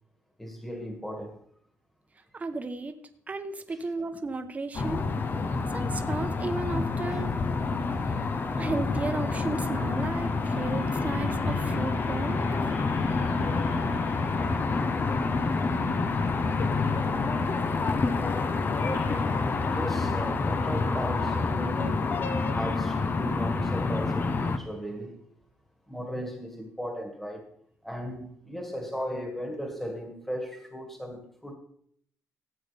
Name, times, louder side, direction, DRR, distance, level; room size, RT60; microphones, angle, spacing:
voice 1, 0.4-1.4 7.1-7.2 18.0-18.2 19.6-25.2 25.9-27.5 27.8-31.6, equal, 5° left, 1.9 m, -36 dB
voice 2, 2.3-2.9 3.3-5.1 5.7-7.3 8.6-12.4, right 3 dB, 25° right, 1.0 m, -34 dB
sound 1, 4.7-24.6, left 4 dB, 35° left, 0.8 m, -28 dB
sound 2, 9.4-19.3 19.8-19.9 20.1-20.2, left 3 dB, 65° left, 2.7 m, -45 dB
15.5 x 8.2 x 3.4 m
cardioid pair, 135°, 6 cm